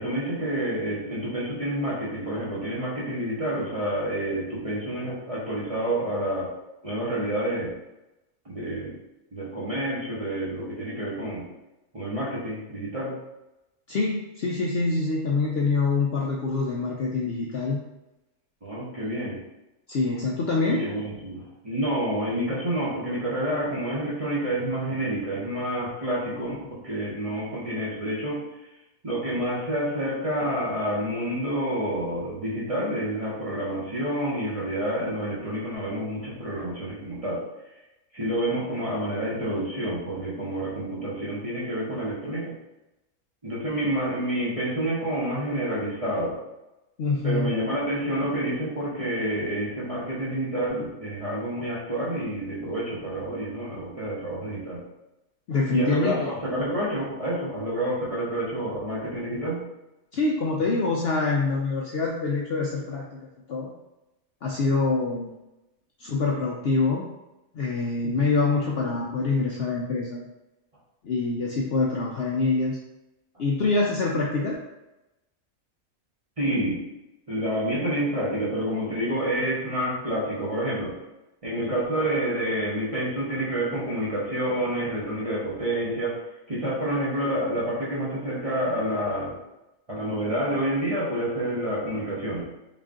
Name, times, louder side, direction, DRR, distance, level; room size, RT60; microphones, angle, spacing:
voice 1, 0.0-6.5 6.8-7.7 8.4-9.0 9.3-11.5 11.9-13.1 18.6-19.4 20.6-28.7 29.0-37.4 38.1-42.6 43.4-46.4 47.2-54.8 55.7-59.6 76.4-76.8 77.3-81.0 81.4-86.2 86.5-89.4 89.9-92.4, right 1 dB, 30° right, -7 dB, 0.7 m, -28 dB
voice 2, 13.9-17.8 19.0-19.1 19.9-20.8 47.0-47.5 55.5-56.3 60.1-63.2 63.5-63.7 64.4-65.3 66.0-67.1 67.5-70.2 71.0-72.8 73.4-74.5, left 3 dB, 65° left, -2 dB, 0.6 m, -25 dB
3.8 x 2.5 x 3.6 m, 0.96 s
omnidirectional pair, 1.5 m